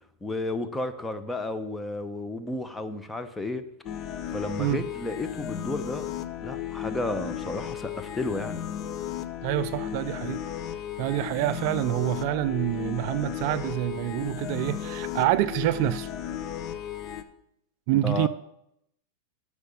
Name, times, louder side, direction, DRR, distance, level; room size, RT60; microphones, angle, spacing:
voice 1, 0.2-3.6 4.3-6.0 6.4-8.7 18.0-18.3, left 2 dB, 10° left, 0.8 m, -32 dB
sound 1, 3.8-17.2, left 10 dB, 40° left, 0.7 m, -35 dB
voice 2, 9.4-10.4 11.0-16.1 17.9-18.3, right 15 dB, 55° right, 0.4 m, -27 dB
8.1 x 4.9 x 6.9 m
hypercardioid pair, 105°, 0 cm